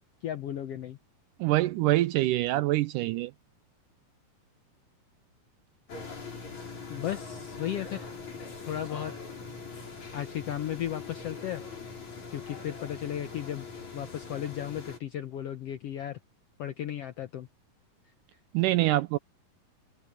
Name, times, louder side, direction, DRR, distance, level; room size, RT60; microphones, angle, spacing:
voice 1, 0.2-1.0 6.9-8.1 8.6-9.1 10.1-11.6 12.3-13.7 13.9-16.2 16.6-17.5, left 11 dB, 75° left, 1.4 m, -35 dB
voice 2, 1.4-3.3 18.5-19.2, right 17 dB, 80° right, 2.1 m, -25 dB
sound 1, 5.9-15.0, left 4 dB, 55° left, 6.8 m, -42 dB
omnidirectional pair, 3.9 m